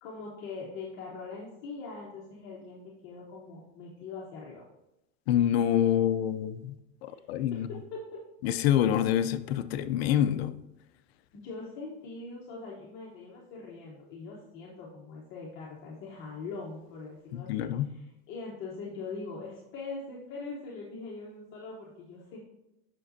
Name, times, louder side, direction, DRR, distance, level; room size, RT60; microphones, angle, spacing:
voice 1, 0.0-4.6 7.1-7.2 7.5-8.2 11.3-22.4, left 4 dB, 30° left, -4 dB, 1.0 m, -42 dB
voice 2, 5.3-6.7 7.0-7.7 8.4-10.5 17.3-17.9, left 10 dB, 55° left, 11 dB, 0.5 m, -26 dB
7.5 x 6.0 x 2.6 m, 0.92 s
supercardioid pair, 170°, 39 cm